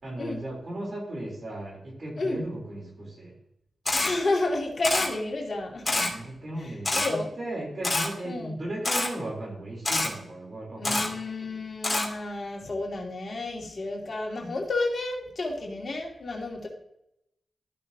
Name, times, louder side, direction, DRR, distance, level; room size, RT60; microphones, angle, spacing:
voice 1, 0.0-3.3 6.1-11.2, right 1 dB, 55° right, -1 dB, 3.8 m, -36 dB
Camera, 3.8-4.1 4.8-5.1 5.8-6.1 6.8-7.1 7.8-8.1 8.8-9.1 9.8-10.1 10.8-11.1 11.8-12.1, left 2 dB, 25° left, 2.4 m, -25 dB
voice 2, 4.0-6.1 6.9-7.3 8.2-8.5 10.8-16.7, left 2 dB, 55° left, -1 dB, 2.6 m, -31 dB
14.0 x 6.2 x 2.9 m, 0.79 s
cardioid pair, 60°, 0 cm